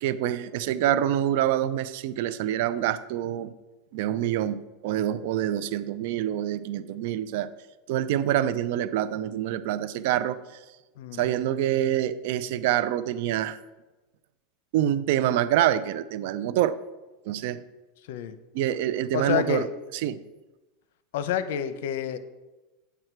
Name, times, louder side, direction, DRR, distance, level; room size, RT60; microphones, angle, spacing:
voice 1, 0.0-3.5 3.9-7.5 7.9-10.4 11.1-13.6 14.7-16.8 17.2-17.6 18.5-19.7 19.9-20.2, right 12 dB, 65° right, 13 dB, 0.6 m, -26 dB
voice 2, 11.0-11.3 18.1-18.4 19.1-19.7 21.1-22.2, left 9 dB, 75° left, 12 dB, 0.8 m, -28 dB
8.6 x 8.0 x 4.6 m, 1.1 s
supercardioid pair, 135°, 0 cm